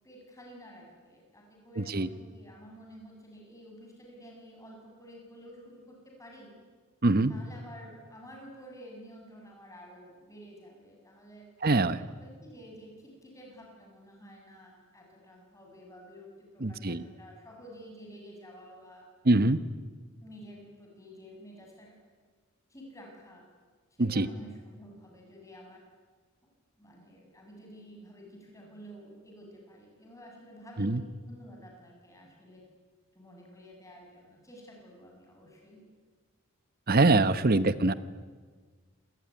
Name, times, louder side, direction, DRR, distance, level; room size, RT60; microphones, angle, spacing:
voice 1, 0.0-6.5 7.3-11.5 12.1-19.0 20.2-22.0 22.7-23.4 24.0-25.8 26.4-26.5 26.8-32.6 33.1-35.8, equal, 15° left, 0 dB, 7.2 m, -50 dB
voice 2, 1.8-2.1 7.0-7.3 11.6-12.0 16.6-17.0 19.2-19.6 24.0-24.3 30.8-31.0 36.9-37.9, right 2 dB, 45° right, 14 dB, 1.0 m, -24 dB
27.5 x 20.0 x 9.7 m, 1.5 s
head